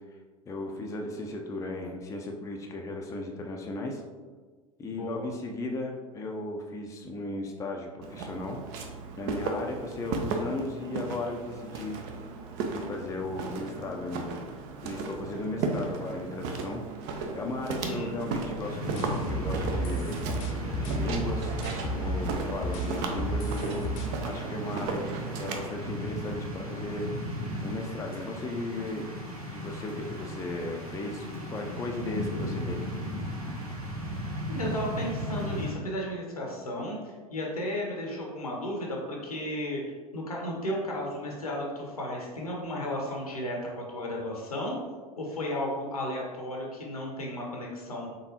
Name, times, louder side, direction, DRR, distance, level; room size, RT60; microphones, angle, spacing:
voice 1, 0.5-4.0 4.8-8.6 9.2-12.0 12.6-14.4 14.8-16.8 17.3-20.2 20.7-21.6 21.9-23.9 24.2-27.2 27.6-29.1 29.5-32.8, left 2 dB, 15° left, 2 dB, 0.5 m, -36 dB
voice 2, 4.9-5.2 17.8-18.1 34.5-39.8 40.1-44.8 45.2-48.1, left 1 dB, 80° left, -1 dB, 0.9 m, -34 dB
Walk footsteps, 8.0-25.7, right 4 dB, 50° right, 0.6 m, -35 dB
sound 1, 18.6-35.7, equal, 85° right, 0.9 m, -37 dB
sound 2, 19.0-22.3 22.6-24.1, equal, 55° left, 0.7 m, -32 dB
3.9 x 3.5 x 2.8 m, 1.4 s
figure-of-eight pair, 75°, 18 cm